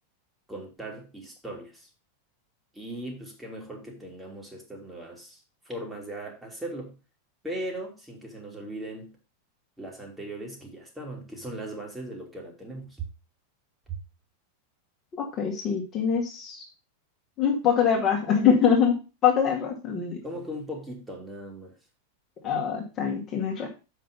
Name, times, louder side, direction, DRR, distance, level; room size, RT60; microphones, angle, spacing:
voice 1, 0.5-1.9 2.7-5.4 5.6-7.0 7.4-9.1 9.8-13.0 13.9-14.0 20.2-21.8, right 1 dB, 5° right, 0 dB, 2.9 m, -38 dB
voice 2, 15.2-16.6 17.4-19.0 19.2-20.2 22.4-23.7, left 7 dB, 30° left, -1 dB, 2.1 m, -24 dB
7.4 x 5.9 x 5.4 m, 0.30 s
figure-of-eight pair, 90°, 0 cm